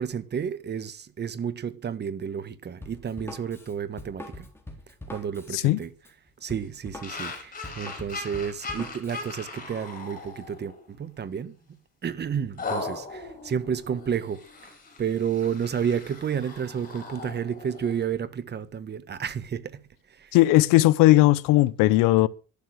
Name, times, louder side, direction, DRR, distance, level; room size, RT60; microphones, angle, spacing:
voice 1, 0.0-4.5 5.1-5.9 6.4-11.5 12.0-14.4 15.0-19.8 20.1-20.3, right 7 dB, 30° right, 1.4 m, -31 dB
Drum kit, 2.8-9.3, left 1 dB, 5° left, 3.8 m, -43 dB
sound 1, 7.0-10.9 11.3-11.5 12.6-18.1, left 3 dB, 25° left, 7.0 m, -39 dB
voice 2, 20.3-22.3, left 17 dB, 90° left, 1.1 m, -18 dB
13.0 x 12.0 x 6.5 m
cardioid pair, 125°, 32 cm